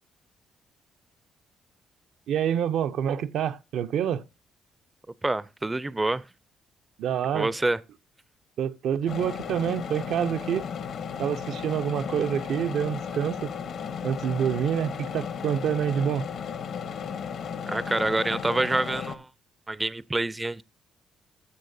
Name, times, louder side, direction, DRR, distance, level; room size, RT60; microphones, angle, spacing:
voice 1, 2.3-4.2 7.0-7.5 8.6-10.7 11.2-13.5 14.0-16.3, right 9 dB, 75° right, 0.5 m, -27 dB
voice 2, 5.2-6.2 7.3-7.8 17.7-19.3 19.7-20.6, right 2 dB, 15° right, 0.4 m, -27 dB
sound 1, 9.1-19.2, left 7 dB, 65° left, 0.9 m, -35 dB
14.0 x 6.6 x 2.6 m
cardioid pair, 90°, 0 cm